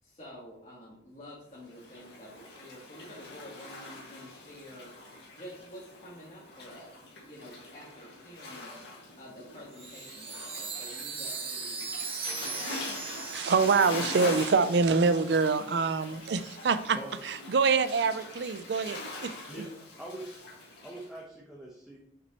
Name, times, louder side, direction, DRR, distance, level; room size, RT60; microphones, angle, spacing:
voice 1, 0.0-4.9 5.3-6.9 7.2-8.7 9.2-11.9, equal, 35° left, -7 dB, 1.6 m, -49 dB
Waves surf, 1.6-21.1, left 2 dB, 65° left, 1.9 m, -43 dB
Chime, 9.7-15.3, right 5 dB, 30° right, 0.9 m, -39 dB
voice 2, 13.0-17.0 17.2-19.4, right 4 dB, 65° right, 13 dB, 0.4 m, -26 dB
voice 3, 19.5-20.4 20.8-22.0, right 1 dB, 5° right, -4 dB, 0.9 m, -43 dB
6.0 x 6.0 x 3.0 m, 0.71 s
head